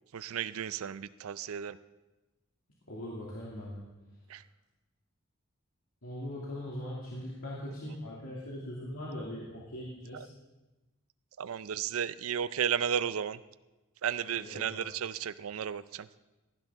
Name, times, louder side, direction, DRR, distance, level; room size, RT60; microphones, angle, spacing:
voice 1, 0.1-1.8 4.3-4.4 10.1-10.3 11.4-13.4 14.0-16.1, right 8 dB, 75° right, 16 dB, 0.4 m, -33 dB
voice 2, 2.9-3.8 6.0-10.3 14.2-14.8, left 1 dB, 75° left, -5 dB, 2.4 m, -40 dB
16.0 x 11.0 x 3.6 m, 1.1 s
head